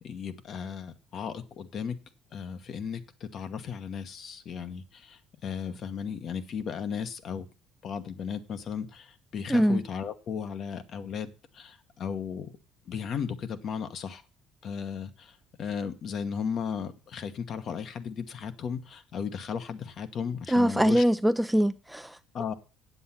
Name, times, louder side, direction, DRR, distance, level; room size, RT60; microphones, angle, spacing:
voice 1, 0.0-2.0 2.3-7.5 7.8-12.6 12.9-14.2 14.6-21.0 22.3-22.5, left 7 dB, 55° left, 1.1 m, -35 dB
voice 2, 9.5-9.8 20.5-22.2, equal, 5° right, 0.5 m, -23 dB
8.0 x 7.6 x 5.7 m
supercardioid pair, 75°, 0 cm